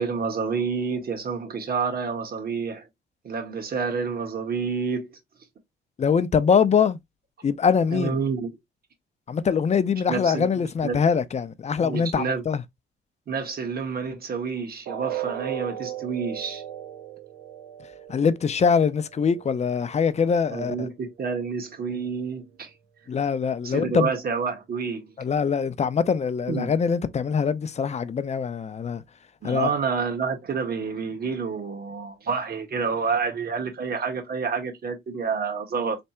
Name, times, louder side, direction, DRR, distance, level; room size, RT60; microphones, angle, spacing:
voice 1, 0.0-2.9 3.2-5.2 7.9-8.5 10.1-11.0 11.8-12.4 13.3-16.6 20.5-22.7 23.6-25.1 26.5-26.7 29.4-36.0, right 5 dB, 50° right, 1.6 m, -29 dB
voice 2, 6.0-7.0 7.4-8.1 9.3-12.6 18.1-20.9 23.1-24.1 25.2-29.0 29.4-29.7, left 6 dB, 35° left, 0.5 m, -23 dB
sound 1, 14.9-20.8 21.2-21.4 21.9-22.0, right 11 dB, 80° right, 0.8 m, -37 dB
3.4 x 2.6 x 4.3 m
cardioid pair, 90°, 20 cm